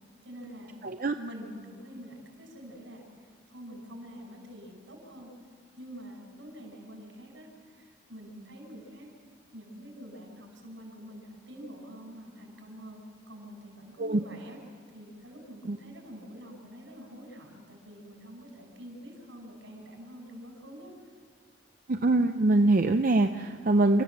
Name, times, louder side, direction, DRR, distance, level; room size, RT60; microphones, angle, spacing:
voice 1, 0.2-0.8 1.2-5.3 5.8-9.1 9.5-14.6 14.9-20.9, equal, 75° right, 1 dB, 5.8 m, -46 dB
voice 2, 0.8-1.1 14.0-14.2 15.7-15.8 21.9-24.0, right 2 dB, 45° right, 7 dB, 0.5 m, -23 dB
28.0 x 14.0 x 7.4 m, 2.1 s
head